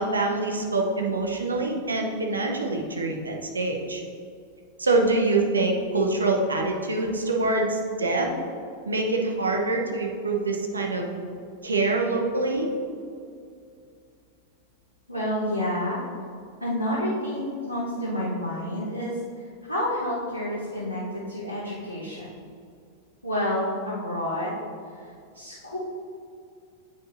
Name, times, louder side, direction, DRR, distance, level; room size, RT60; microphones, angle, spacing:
voice 1, 0.0-4.0 4.8-8.3 8.8-11.1 11.6-12.7, right 2 dB, 75° right, 1 dB, 0.8 m, -25 dB
voice 2, 15.1-16.0 16.6-19.2 19.7-22.4 23.2-24.5 25.0-25.8, left 1 dB, 90° left, -9 dB, 1.2 m, -29 dB
9.1 x 5.2 x 2.7 m, 2.4 s
figure-of-eight pair, 90°, 0 cm